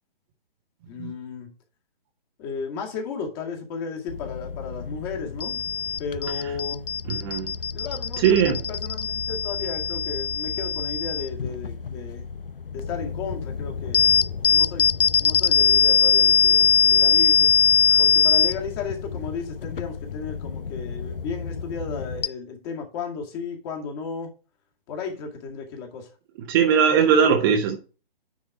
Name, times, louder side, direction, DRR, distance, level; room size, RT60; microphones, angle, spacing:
voice 1, 0.9-1.5 2.4-5.6 6.0-6.9 7.7-8.4 8.7-12.3 12.7-14.2 14.5-14.8 15.2-17.5 18.0-24.3 24.9-26.1, left 5 dB, 25° left, 2.1 m, -34 dB
sound 1, 4.1-22.3, left 7 dB, 65° left, 0.6 m, -23 dB
voice 2, 7.1-7.5 8.2-8.6 26.5-27.8, right 7 dB, 25° right, 1.0 m, -19 dB
9.6 x 4.7 x 4.8 m
figure-of-eight pair, 130°, 29 cm